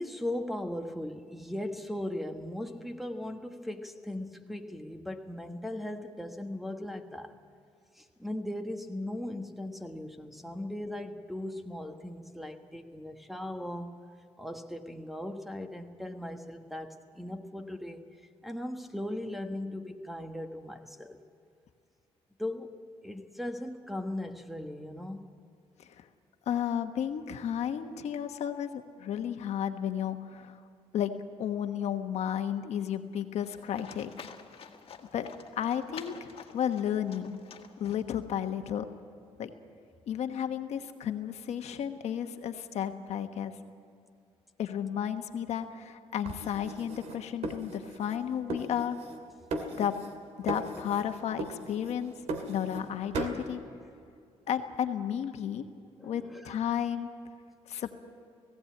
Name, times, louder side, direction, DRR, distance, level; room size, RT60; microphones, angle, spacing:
voice 1, 0.0-7.3 7.9-14.0 14.4-18.1 18.4-21.2 22.4-25.3 56.0-56.5, left 1 dB, ahead, 6 dB, 1.3 m, -38 dB
voice 2, 26.5-30.6 30.9-34.1 35.0-35.3 35.6-37.4 37.8-38.9 39.4-39.5 40.1-43.6 44.6-49.0 49.8-50.0 50.4-52.1 52.5-53.6 54.5-55.6 56.0-57.1 57.7-57.9, left 9 dB, 75° left, 7 dB, 1.3 m, -33 dB
Livestock farm animals working animals, 33.4-38.4, left 6 dB, 55° left, 1.7 m, -49 dB
sound 1, 46.3-48.2 48.5-49.2 49.5-50.2 50.5-51.1 51.4-52.9 53.1-53.4, right 2 dB, 75° right, 2.4 m, -37 dB
19.0 x 16.0 x 8.6 m, 2.4 s
cardioid pair, 110°, 11 cm